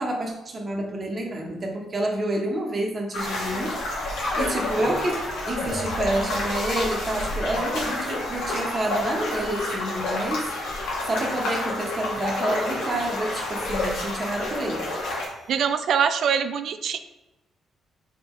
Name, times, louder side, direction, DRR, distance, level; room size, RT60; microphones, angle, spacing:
voice 1, 0.0-3.7 4.3-5.2 5.5-10.5 11.1-14.8, right 1 dB, 35° right, 0 dB, 1.1 m, -28 dB
sound 1, 3.1-15.3, left 2 dB, 90° left, 1.3 m, -29 dB
sound 2, 3.3-15.8, left 1 dB, 35° left, 1.4 m, -41 dB
voice 2, 15.5-17.0, right 7 dB, 65° right, 10 dB, 0.3 m, -23 dB
4.3 x 3.7 x 3.1 m, 1.0 s
cardioid pair, 90°, 0 cm